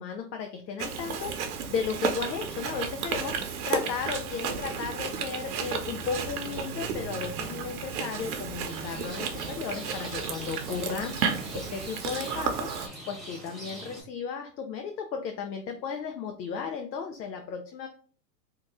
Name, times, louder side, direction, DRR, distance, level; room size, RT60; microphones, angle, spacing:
voice 1, 0.0-12.7 13.1-17.9, left 6 dB, 90° left, 4 dB, 0.7 m, -35 dB
Chewing mastication, 0.8-12.9, right 6 dB, 60° right, 0.8 m, -33 dB
Rain, 8.7-14.0, equal, ahead, 0.9 m, -43 dB
2.8 x 2.3 x 3.6 m, 0.43 s
hypercardioid pair, 125°, 50 cm